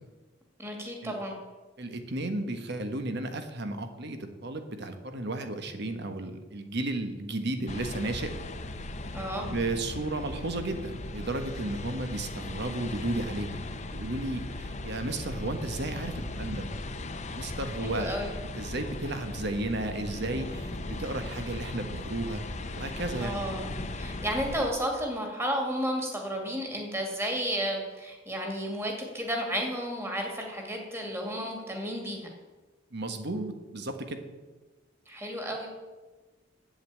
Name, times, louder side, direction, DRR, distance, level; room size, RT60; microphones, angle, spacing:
voice 1, 0.6-1.3 9.1-9.5 17.8-18.3 23.2-23.6 23.9-32.3 35.1-35.7, equal, 15° right, 2 dB, 2.3 m, -32 dB
voice 2, 1.8-8.3 9.3-13.6 13.9-16.7 17.3-18.1 18.6-22.4 22.8-23.4 32.9-34.2, right 2 dB, 55° right, 7 dB, 1.3 m, -33 dB
sound 1, 7.7-24.7, left 2 dB, 35° left, 0.8 m, -38 dB
8.2 x 7.9 x 9.0 m, 1.2 s
head